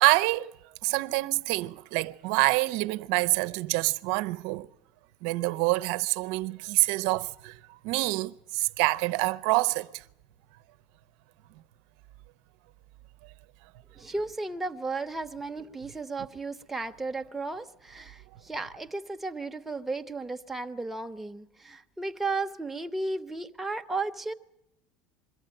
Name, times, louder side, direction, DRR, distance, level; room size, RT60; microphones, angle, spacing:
voice 1, 0.0-0.5 0.8-4.7 5.2-7.6 7.8-10.0, right 21 dB, 75° right, 0.7 m, -26 dB
voice 2, 13.9-24.3, right 3 dB, 5° right, 1.0 m, -34 dB
22.5 x 14.5 x 8.9 m
supercardioid pair, 125°, 3 cm